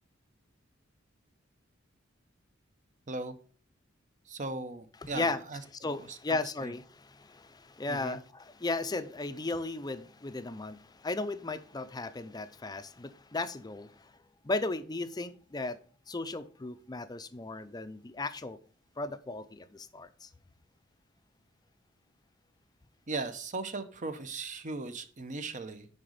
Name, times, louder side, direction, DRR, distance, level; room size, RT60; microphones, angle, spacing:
voice 1, 4.3-5.6 5.9-6.7 7.9-8.2 23.1-25.9, right 3 dB, 40° right, 0.8 m, -38 dB
voice 2, 5.0-5.4 5.8-14.1 14.4-15.8 16.1-18.6 19.0-20.3, left 3 dB, 20° left, 0.5 m, -36 dB
10.0 x 4.1 x 5.0 m
head